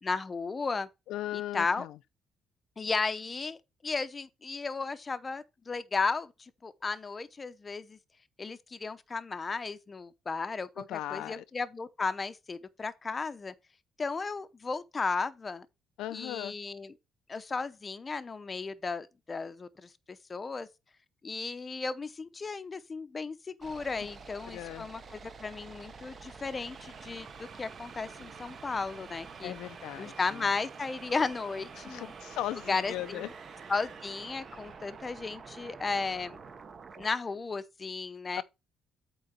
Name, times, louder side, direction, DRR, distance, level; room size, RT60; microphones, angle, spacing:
voice 1, 0.0-0.9 1.3-1.9 2.8-3.6 3.8-8.0 8.4-13.5 14.0-15.7 16.1-16.9 17.3-20.7 21.2-29.5 30.0-32.1 32.7-33.3 33.7-36.4 37.0-38.4, left 4 dB, 20° left, 0.7 m, -34 dB
voice 2, 1.1-1.9 10.8-11.4 16.0-16.5 24.5-24.9 29.4-30.5 31.8-33.3 38.3-38.4, left 13 dB, 85° left, 0.6 m, -38 dB
sound 1, 23.6-37.1, right 5 dB, 30° right, 0.9 m, -48 dB
sound 2, 26.4-34.9, right 6 dB, 55° right, 2.1 m, -53 dB
8.6 x 3.9 x 6.7 m
cardioid pair, 150°, 0 cm